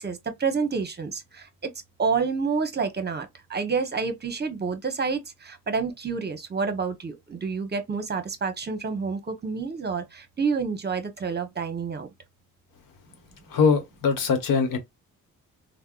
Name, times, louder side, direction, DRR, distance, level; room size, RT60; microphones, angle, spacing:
voice 1, 0.0-1.7 2.0-12.1, right 5 dB, 30° right, 0.9 m, -29 dB
voice 2, 13.5-14.8, left 5 dB, 70° left, 1.1 m, -22 dB
3.4 x 2.2 x 2.4 m
supercardioid pair, 65°, 35 cm